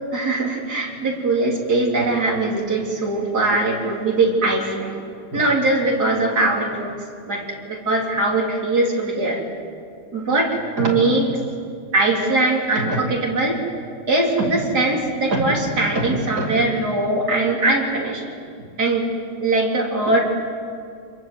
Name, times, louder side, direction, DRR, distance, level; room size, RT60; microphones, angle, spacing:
voice 1, 0.1-5.0 5.3-7.0 7.3-9.4 10.1-11.4 11.9-13.6 14.1-18.2 18.8-19.0 19.4-20.2, right 2 dB, 60° right, -2 dB, 4.2 m, -21 dB
27.0 x 22.5 x 7.7 m, 2.4 s
omnidirectional pair, 2.0 m